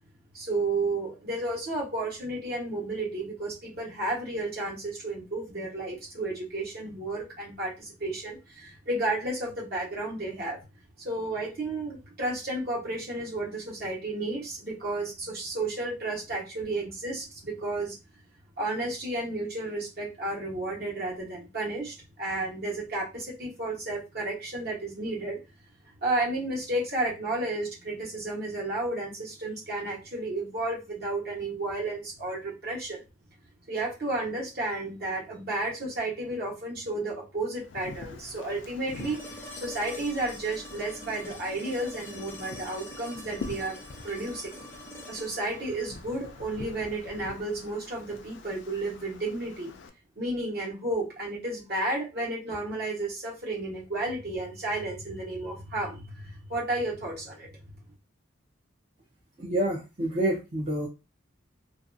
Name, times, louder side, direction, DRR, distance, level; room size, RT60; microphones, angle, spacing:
voice 1, 0.3-10.6 11.0-17.9 18.6-25.4 26.0-33.0 33.7-44.5 45.1-49.7 50.2-57.8, right 2 dB, 50° right, -4 dB, 1.0 m, -32 dB
Wind, 37.6-49.9, left 4 dB, 60° left, 0.4 m, -45 dB
sound 1, 38.9-46.9 49.1-49.2, equal, 10° left, 0.6 m, -45 dB
voice 2, 59.4-60.9, right 1 dB, 35° right, -3 dB, 0.5 m, -28 dB
2.5 x 2.2 x 2.5 m, 0.26 s
head